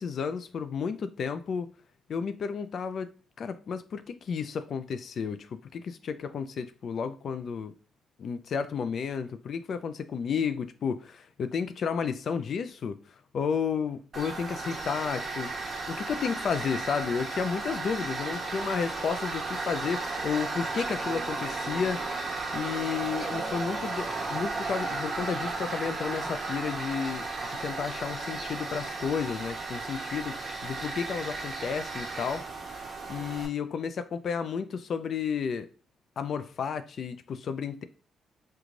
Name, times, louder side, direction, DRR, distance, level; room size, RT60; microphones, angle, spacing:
voice 1, 0.0-1.7 2.1-3.1 3.4-7.7 8.2-13.0 13.3-15.5 15.9-32.5 33.1-35.7 36.2-37.8, left 6 dB, 55° left, 0.4 m, -32 dB
Tools, 14.1-33.5, right 3 dB, 40° right, 1.2 m, -34 dB
3.1 x 2.2 x 3.8 m
cardioid pair, 90°, 0 cm